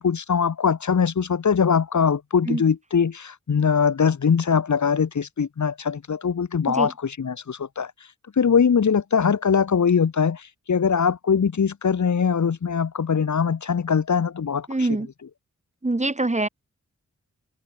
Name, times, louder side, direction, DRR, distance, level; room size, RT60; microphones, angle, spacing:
voice 1, 0.0-7.9 8.4-14.7, left 6 dB, 70° left, 1.6 m, -22 dB
voice 2, 14.7-15.1 15.8-16.5, right 2 dB, 25° right, 3.7 m, -24 dB
wide cardioid pair, 115°, 30 cm